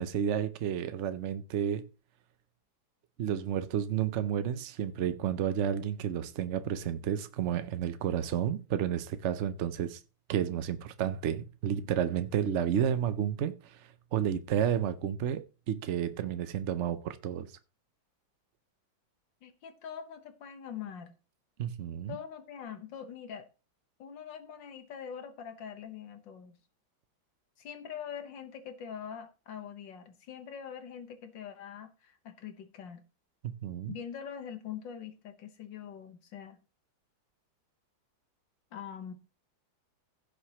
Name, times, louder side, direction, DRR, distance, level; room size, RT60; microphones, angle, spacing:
voice 1, 0.0-1.9 3.2-10.0 10.3-17.5 21.6-22.2 33.4-33.9, right 9 dB, 80° right, 0.6 m, -31 dB
voice 2, 19.4-21.2 22.1-23.5 24.0-26.6 27.6-33.0 33.9-36.6 38.7-39.1, left 8 dB, 70° left, 1.9 m, -43 dB
16.0 x 6.5 x 2.9 m
omnidirectional pair, 2.1 m